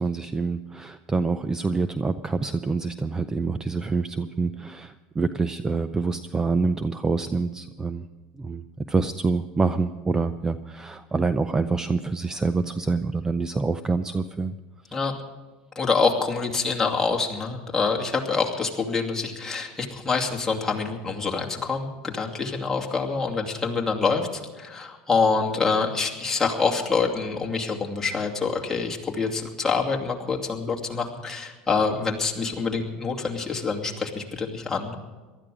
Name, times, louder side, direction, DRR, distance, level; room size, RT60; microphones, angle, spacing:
voice 1, 0.0-8.1 8.3-14.5 14.9-15.0, right 4 dB, 15° right, 12 dB, 0.5 m, -26 dB
voice 2, 15.8-35.0, left 4 dB, 15° left, -1 dB, 2.5 m, -26 dB
19.0 x 13.0 x 5.0 m, 1.3 s
supercardioid pair, 125°, 4 cm